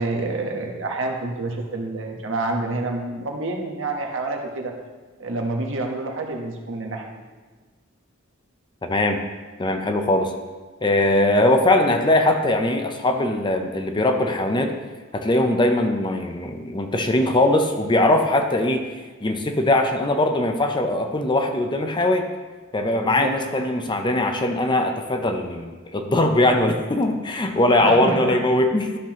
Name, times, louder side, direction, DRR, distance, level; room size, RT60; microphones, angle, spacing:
voice 1, 0.0-4.7 5.2-7.1 23.0-23.6 27.7-28.4, right 2 dB, 65° right, 1 dB, 1.1 m, -28 dB
voice 2, 8.8-9.2 9.6-10.3 10.8-14.7 15.1-18.8 19.2-22.3 22.7-28.9, left 1 dB, 20° left, 5 dB, 0.6 m, -21 dB
12.0 x 5.9 x 3.0 m, 1.4 s
head